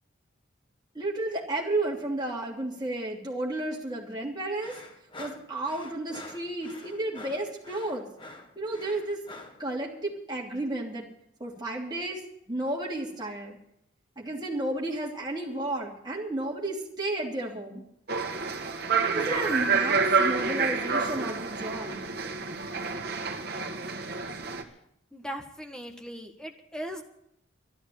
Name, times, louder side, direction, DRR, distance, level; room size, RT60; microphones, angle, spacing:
voice 1, 0.9-4.7 5.2-8.0 8.6-9.2 9.6-11.1 11.4-12.2 12.5-13.6 14.2-17.8 19.1-22.0, right 2 dB, 20° right, -3 dB, 2.9 m, -32 dB
sound 1, 4.6-9.6, left 2 dB, 25° left, 1.4 m, -46 dB
sound 2, 18.1-24.6, right 5 dB, 50° right, 1.6 m, -28 dB
voice 2, 25.1-27.0, equal, 5° left, 3 dB, 1.4 m, -39 dB
12.5 x 11.0 x 8.8 m, 0.74 s
head